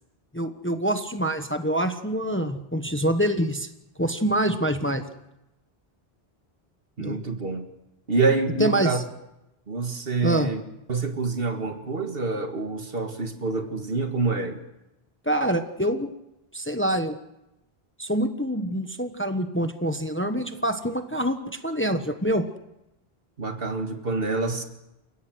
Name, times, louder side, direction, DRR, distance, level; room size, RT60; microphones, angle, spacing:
voice 1, 0.3-3.7 4.0-5.0 7.0-7.2 8.6-9.0 10.2-10.5 15.3-16.1 16.5-17.2 18.0-22.4, right 1 dB, 10° left, 8 dB, 1.0 m, -25 dB
voice 2, 7.0-7.7 8.1-9.0 9.7-10.6 10.9-14.6 23.4-24.6, right 3 dB, 65° right, 6 dB, 2.0 m, -26 dB
29.5 x 16.5 x 6.3 m, 0.92 s
omnidirectional pair, 1.1 m